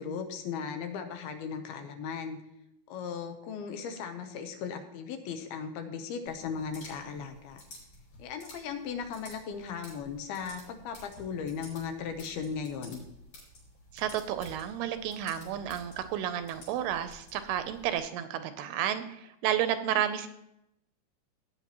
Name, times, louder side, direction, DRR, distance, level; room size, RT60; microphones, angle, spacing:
voice 1, 0.0-2.4 2.9-7.6 8.2-13.0 19.9-20.0, left 6 dB, 75° left, 7 dB, 2.6 m, -37 dB
sound 1, 6.3-18.0, left 1 dB, 55° left, 6.0 m, -52 dB
voice 2, 13.9-20.3, right 10 dB, 80° right, 10 dB, 2.5 m, -31 dB
16.5 x 9.1 x 3.0 m, 0.82 s
omnidirectional pair, 4.8 m